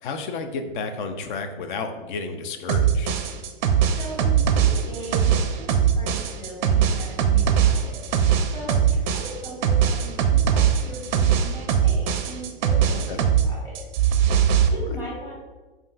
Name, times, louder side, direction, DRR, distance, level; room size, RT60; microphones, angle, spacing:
voice 1, 0.0-3.1 13.1-13.2, left 4 dB, 50° left, 7 dB, 0.5 m, -31 dB
sound 1, 2.7-13.5 13.7-14.7, right 8 dB, 50° right, 0.4 m, -20 dB
voice 2, 3.9-13.8 14.2-15.3, right 1 dB, 15° left, -7 dB, 1.5 m, -38 dB
5.1 x 2.5 x 2.3 m, 1.3 s
hypercardioid pair, 135°, 31 cm